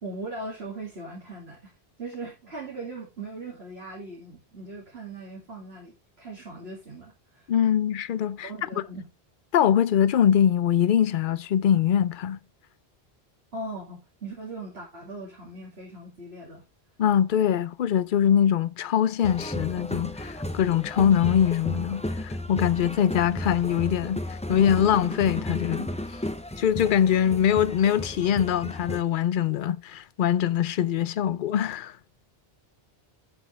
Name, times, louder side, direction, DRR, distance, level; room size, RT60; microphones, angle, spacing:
voice 1, 0.0-1.7 2.0-7.5 8.4-9.1 13.5-16.6, right 2 dB, 75° right, 2.6 m, -39 dB
voice 2, 7.5-8.8 9.5-12.4 17.0-25.9 26.6-32.0, left 9 dB, 60° left, 0.7 m, -23 dB
sound 1, 19.2-29.0, left 1 dB, 10° left, 0.5 m, -34 dB
9.2 x 6.2 x 3.3 m
omnidirectional pair, 1.1 m